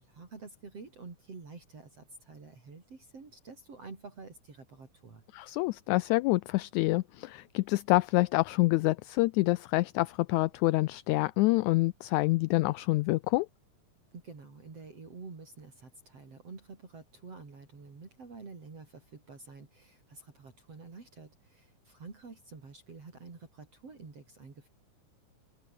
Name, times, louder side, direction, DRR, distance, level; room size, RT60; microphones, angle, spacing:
voice 1, 0.0-5.2 14.1-24.7, right 4 dB, 45° right, 5.5 m, -49 dB
voice 2, 5.3-13.5, left 21 dB, 80° left, 1.7 m, -27 dB
omnidirectional pair, 3.8 m